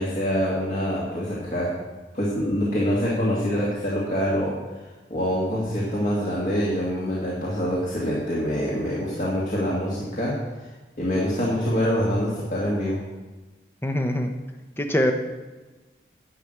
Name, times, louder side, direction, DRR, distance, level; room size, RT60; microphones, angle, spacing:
voice 1, 0.0-1.7 2.1-4.6 5.1-10.3 11.0-13.0, equal, 45° left, -6 dB, 2.1 m, -25 dB
voice 2, 13.8-14.3 14.8-15.1, left 1 dB, 15° left, 5 dB, 0.9 m, -23 dB
10.5 x 6.1 x 8.0 m, 1.2 s
head